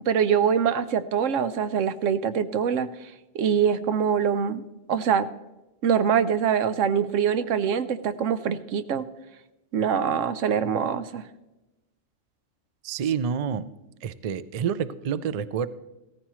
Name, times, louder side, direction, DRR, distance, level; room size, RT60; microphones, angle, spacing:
voice 1, 0.1-2.9 3.3-4.6 4.9-5.3 5.8-9.0 9.7-11.2, right 7 dB, 90° right, 12 dB, 1.1 m, -24 dB
voice 2, 12.8-13.6 14.0-15.7, right 7 dB, 55° right, 14 dB, 0.4 m, -28 dB
16.0 x 14.0 x 3.1 m, 1.0 s
omnidirectional pair, 1.3 m